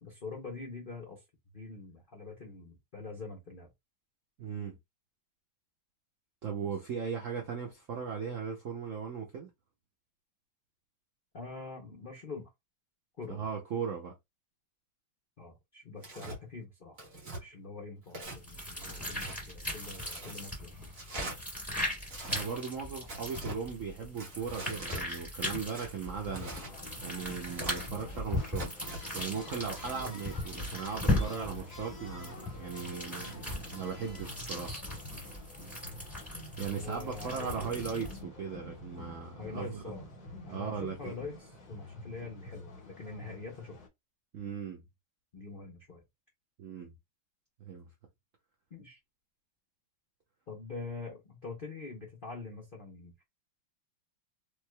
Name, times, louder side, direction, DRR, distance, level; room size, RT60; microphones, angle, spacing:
voice 1, 0.0-1.2 1.5-3.7 11.3-12.5 13.2-13.5 15.4-17.0 17.3-20.9 29.9-30.2 36.7-37.8 39.4-40.0 40.4-43.8 45.3-46.0 48.7-49.0 50.5-53.3, left 4 dB, 85° left, 0.4 m, -44 dB
voice 2, 4.4-4.8 6.4-9.5 13.3-14.1 22.2-26.5 27.0-28.7 29.1-34.7 36.6-39.9 40.5-41.1 44.3-44.8 46.6-46.9 47.6-47.9, right 6 dB, 90° right, 0.6 m, -38 dB
Tearing, 16.0-16.4 17.0-17.4 18.1-18.4 18.8-19.4 19.9-20.4 20.9-21.4 22.0-22.4 23.1-23.6 24.2-25.0 25.7-26.7 27.3-27.9 28.5-29.0, right 2 dB, 45° right, 1.6 m, -43 dB
sound 1, 18.2-38.2, left 1 dB, ahead, 2.2 m, -38 dB
sound 2, 26.3-43.9, left 2 dB, 40° left, 1.7 m, -48 dB
3.4 x 3.3 x 2.2 m
omnidirectional pair, 2.2 m